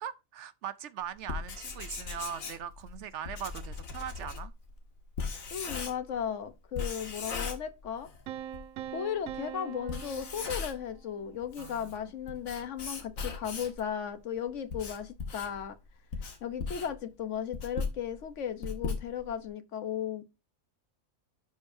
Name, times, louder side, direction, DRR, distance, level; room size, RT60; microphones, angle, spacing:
voice 1, 0.0-4.5 11.6-11.9 16.7-16.8, right 9 dB, 65° right, 0.8 m, -40 dB
Writing, 1.2-6.2 6.7-8.2 8.5-8.6 9.3-9.4 9.8-10.9 11.3-13.8 14.4-19.5, left 5 dB, 85° left, 1.8 m, -38 dB
voice 2, 5.5-8.1 8.9-15.8 16.4-20.4, left 8 dB, 65° left, 1.2 m, -36 dB
Piano, 8.3-11.2, right 10 dB, 90° right, 1.0 m, -43 dB
11.5 x 5.1 x 2.6 m
omnidirectional pair, 1.4 m